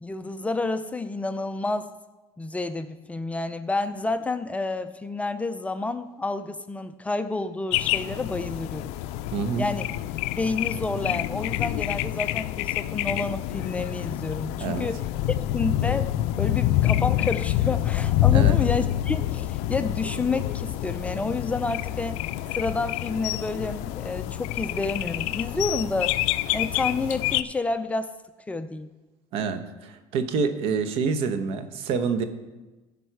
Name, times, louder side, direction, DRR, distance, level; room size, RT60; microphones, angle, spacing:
voice 1, 0.0-1.9 2.4-8.9 9.6-9.9 10.4-16.1 16.4-22.2 22.5-26.2 26.5-28.1 28.5-28.9, left 3 dB, 15° left, 10 dB, 0.4 m, -29 dB
sound 1, 7.7-27.4, left 14 dB, 75° left, 0.4 m, -27 dB
voice 2, 9.3-9.7 14.6-14.9 18.3-18.6 29.3-32.2, right 5 dB, 65° right, 9 dB, 1.0 m, -27 dB
15.0 x 5.4 x 4.6 m, 1.2 s
cardioid pair, 125°, 11 cm